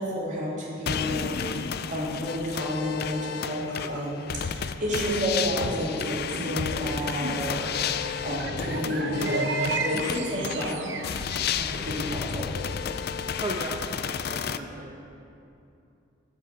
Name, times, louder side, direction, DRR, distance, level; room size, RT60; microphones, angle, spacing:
voice 1, 0.0-7.9 8.2-10.9 11.6-12.5, equal, 40° right, -5 dB, 2.7 m, -31 dB
sound 1, 0.9-14.6, left 7 dB, 55° left, 0.4 m, -32 dB
sound 2, 3.7-4.0 4.6-11.4, right 2 dB, 65° right, 0.8 m, -33 dB
voice 2, 13.4-14.9, right 1 dB, 25° right, -3 dB, 0.9 m, -35 dB
12.0 x 5.5 x 7.5 m, 2.7 s
head